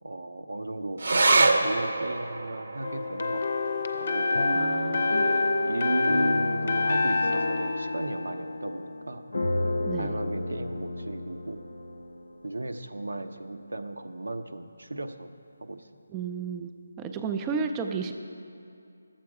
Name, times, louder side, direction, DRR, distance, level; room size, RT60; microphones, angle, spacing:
voice 1, 0.0-4.5 5.2-9.2 10.0-11.7 12.4-15.3 15.6-15.9, right 2 dB, 90° right, 7 dB, 0.7 m, -35 dB
sound 1, 1.0-7.8 8.1-8.2 8.5-9.2 9.8-9.9, right 2 dB, 60° right, 0.8 m, -29 dB
sound 2, 2.8-8.8, left 3 dB, 45° left, 0.6 m, -28 dB
sound 3, 4.3-12.5 13.1-13.2 13.4-13.7, left 1 dB, 85° left, 0.6 m, -32 dB
voice 2, 4.5-5.2 9.9-10.2 16.1-18.1, right 5 dB, 10° right, 5 dB, 0.3 m, -33 dB
12.5 x 7.5 x 4.7 m, 2.5 s
figure-of-eight pair, 170°, 0 cm